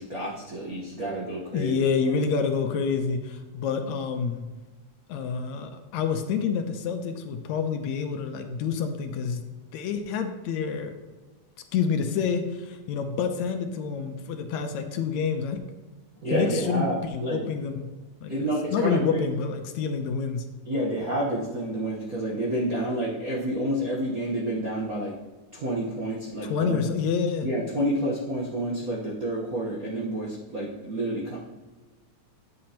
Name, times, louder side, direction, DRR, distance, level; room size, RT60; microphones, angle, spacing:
voice 1, 0.0-1.8 16.2-17.4 18.3-19.3 20.6-25.2 25.5-26.9 27.4-31.4, right 1 dB, 80° right, -3 dB, 0.8 m, -29 dB
voice 2, 1.5-4.5 5.1-9.4 9.7-10.9 11.7-15.6 16.3-17.9 18.2-20.4 26.4-27.5, left 6 dB, 75° left, 6 dB, 1.9 m, -28 dB
10.0 x 7.6 x 2.9 m, 1.3 s
omnidirectional pair, 3.4 m